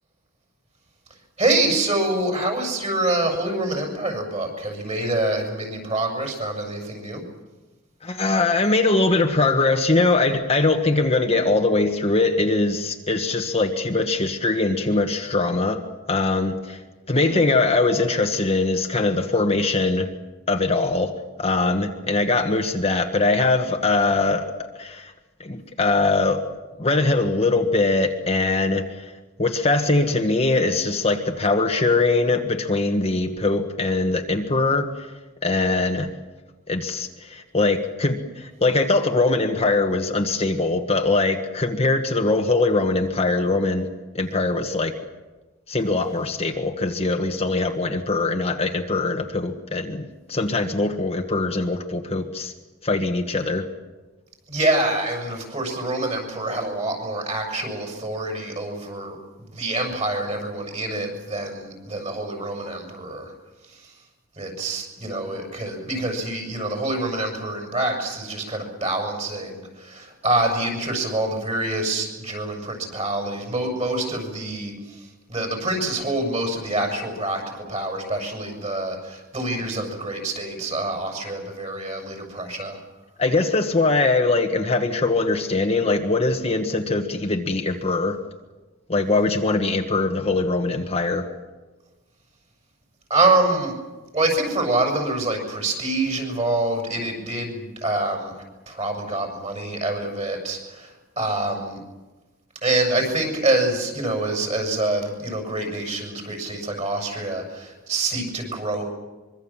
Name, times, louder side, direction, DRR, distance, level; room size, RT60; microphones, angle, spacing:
voice 1, 1.4-7.2 54.5-59.2 59.5-63.3 63.7-63.9 64.4-82.8 93.1-93.7 94.1-101.8 102.6-108.8, right 2 dB, 35° right, 3 dB, 6.9 m, -26 dB
voice 2, 8.0-16.8 17.1-20.1 20.5-21.1 21.4-24.4 24.8-25.1 25.4-26.5 26.8-29.1 29.4-35.1 35.4-36.1 36.7-43.9 44.1-44.9 45.7-52.5 52.8-53.6 83.2-88.2 88.9-91.3, left 3 dB, 30° left, 3 dB, 1.5 m, -22 dB
25.0 x 23.5 x 7.4 m, 1.2 s
head